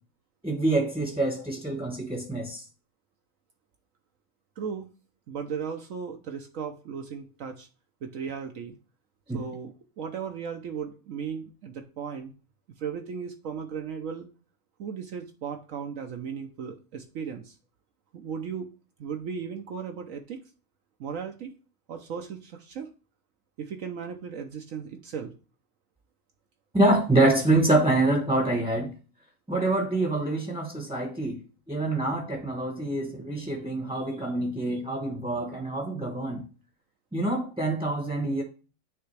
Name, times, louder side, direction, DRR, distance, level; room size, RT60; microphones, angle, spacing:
voice 1, 0.4-2.6 9.3-9.4 26.7-28.9 29.5-31.4 31.7-36.4 37.1-38.4, right 2 dB, 5° right, 0.9 m, -26 dB
voice 2, 4.6-4.9 5.3-7.7 8.0-8.7 9.3-12.3 12.8-14.3 14.8-17.6 18.1-18.7 19.0-20.4 21.0-21.5 21.9-22.9 23.6-25.3, right 7 dB, 70° right, 1.1 m, -36 dB
9.2 x 3.5 x 3.2 m
omnidirectional pair, 1.5 m